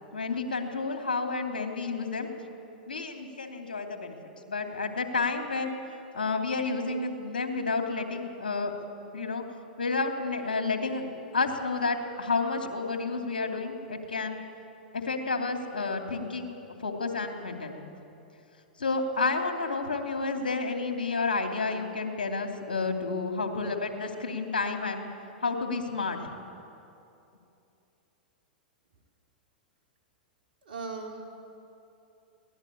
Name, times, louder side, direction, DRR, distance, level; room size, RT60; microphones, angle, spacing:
voice 1, 0.1-2.3 2.9-4.2 4.5-5.8 6.1-8.7 9.1-9.4 9.8-11.1 11.3-14.4 14.9-16.5 16.8-17.8 18.8-25.0 25.4-26.2, left 4 dB, 80° left, 4 dB, 2.8 m, -30 dB
voice 2, 30.6-31.2, right 4 dB, 75° right, 1 dB, 4.2 m, -38 dB
23.0 x 18.0 x 8.5 m, 2.8 s
hypercardioid pair, 105°, 5 cm